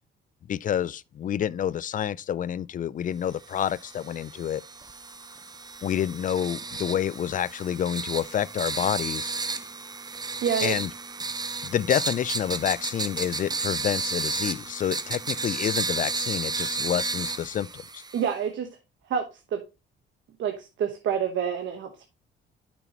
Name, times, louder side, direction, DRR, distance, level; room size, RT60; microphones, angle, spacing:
voice 1, 0.5-4.6 5.8-9.3 10.6-10.9 11.6-18.0, left 10 dB, 40° left, 0.4 m, -28 dB
sound 1, 3.4-18.3, right 4 dB, 20° right, 0.6 m, -33 dB
voice 2, 10.4-10.8 18.1-18.7 19.1-19.6 20.4-22.1, right 8 dB, 70° right, 1.1 m, -28 dB
9.0 x 6.1 x 2.9 m
cardioid pair, 90°, 20 cm